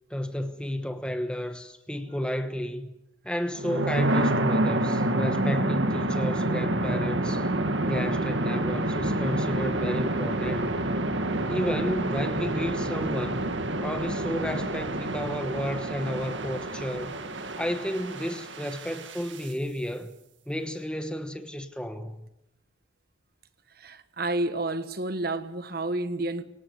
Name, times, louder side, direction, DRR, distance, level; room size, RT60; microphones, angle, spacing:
voice 1, 0.1-2.9 3.2-7.5 7.9-10.8 11.5-13.5 13.8-17.1 17.6-20.1 20.5-22.3, equal, 5° left, 1.2 m, -32 dB
sound 1, 3.5-19.5, right 1 dB, 70° right, 1.9 m, -28 dB
voice 2, 23.7-26.4, right 2 dB, 50° right, 1.4 m, -30 dB
24.5 x 18.5 x 7.9 m
head